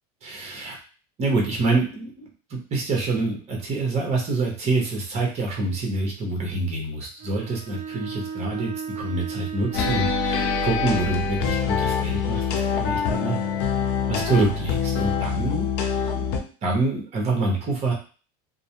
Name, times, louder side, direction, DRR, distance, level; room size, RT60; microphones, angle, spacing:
voice 1, 0.2-0.8 1.2-13.4 14.1-15.7 16.1-17.9, right 3 dB, 35° right, -1 dB, 1.0 m, -26 dB
Bowed string instrument, 7.2-11.2, right 6 dB, 50° right, 0.5 m, -35 dB
sound 1, 9.7-16.4, left 6 dB, 60° left, 0.5 m, -25 dB
2.5 x 2.1 x 2.9 m, 0.37 s
supercardioid pair, 135°, 19 cm